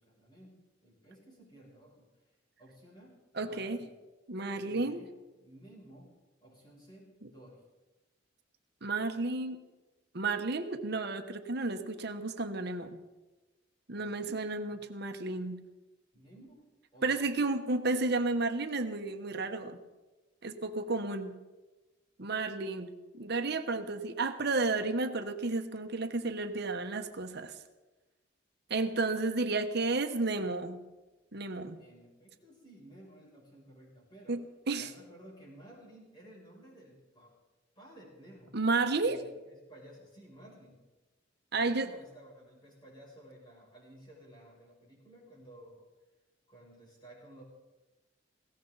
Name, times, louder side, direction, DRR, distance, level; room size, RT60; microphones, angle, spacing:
voice 1, 0.0-2.1 2.6-4.0 4.4-6.1 6.4-7.6 13.9-14.8 16.1-16.6 16.9-17.3 31.8-34.4 34.8-37.4 37.8-38.6 39.0-40.8 41.5-45.8 46.5-47.4, right 1 dB, 25° left, -4 dB, 7.2 m, -55 dB
voice 2, 3.4-3.8 4.3-5.0 8.8-9.6 10.1-13.0 13.9-15.6 17.0-19.8 20.4-21.4 22.2-27.5 28.7-30.8 31.3-31.8 34.3-34.4 34.7-34.9 38.5-39.2 41.5-41.9, right 3 dB, 55° right, 7 dB, 1.1 m, -32 dB
20.0 x 17.0 x 4.1 m, 1.1 s
head